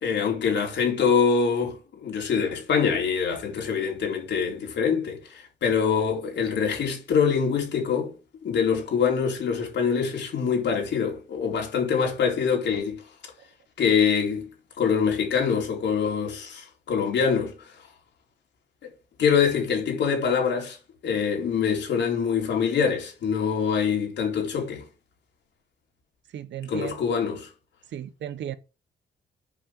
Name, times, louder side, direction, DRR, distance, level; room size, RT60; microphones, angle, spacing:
voice 1, 0.0-8.1 8.4-13.0 13.8-14.5 14.8-17.5 19.2-20.8 21.0-24.8 26.7-27.5, left 6 dB, 75° left, 4.3 m, -24 dB
voice 2, 26.3-27.0 27.9-28.5, right 10 dB, 75° right, 1.1 m, -35 dB
8.5 x 5.2 x 6.2 m
cardioid pair, 90°, 19 cm